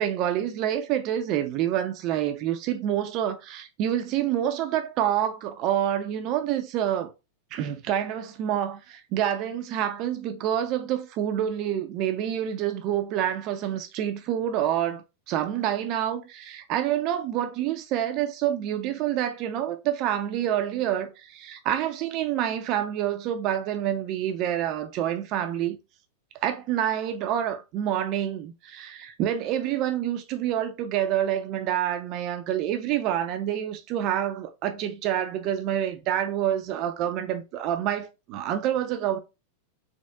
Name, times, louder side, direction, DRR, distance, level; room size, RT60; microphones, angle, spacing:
voice 1, 0.0-7.1 7.5-25.8 26.4-39.2, right 11 dB, 40° right, 0.6 m, -27 dB
3.9 x 3.4 x 2.3 m
figure-of-eight pair, 90°, 0 cm